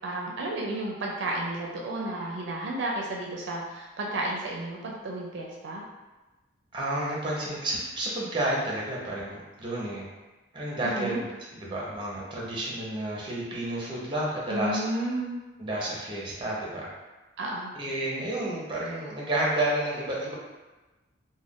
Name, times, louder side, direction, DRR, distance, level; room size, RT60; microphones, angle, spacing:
voice 1, 0.0-5.8 10.8-11.2 14.5-15.4 17.4-17.7, right 1 dB, 70° right, -2 dB, 0.4 m, -32 dB
voice 2, 6.7-10.0 10.5-11.3 11.5-14.8 15.6-16.9 17.7-20.3, right 1 dB, 25° right, -5 dB, 0.6 m, -30 dB
2.4 x 2.1 x 3.5 m, 1.1 s
head